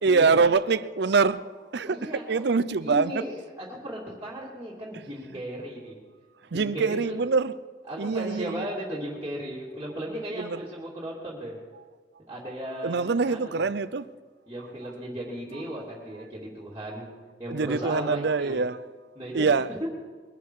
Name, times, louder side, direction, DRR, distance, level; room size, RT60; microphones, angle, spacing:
voice 1, 0.0-3.2 6.5-7.5 8.0-8.7 10.3-10.6 12.8-14.0 17.5-18.8 19.3-19.7, right 4 dB, 65° right, 0.6 m, -24 dB
voice 2, 1.9-2.4 2.8-6.0 6.5-7.2 7.9-11.6 12.3-13.7 14.5-17.1 17.4-18.6 19.1-19.5 19.8-19.9, equal, 15° right, 2.8 m, -36 dB
22.0 x 11.5 x 4.8 m
head